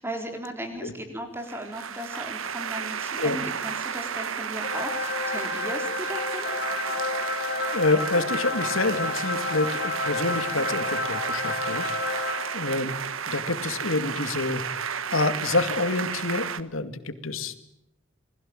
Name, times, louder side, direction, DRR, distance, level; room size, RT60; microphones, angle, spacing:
voice 1, 0.0-6.6, right 1 dB, 10° right, 5 dB, 3.9 m, -36 dB
sound 1, 1.4-16.6, right 7 dB, 85° right, 1.4 m, -32 dB
sound 2, 4.6-12.9, left 3 dB, 55° left, 3.3 m, -31 dB
voice 2, 7.3-12.9 13.3-17.6, left 3 dB, 85° left, 10 dB, 2.3 m, -28 dB
28.5 x 21.0 x 8.9 m, 0.84 s
head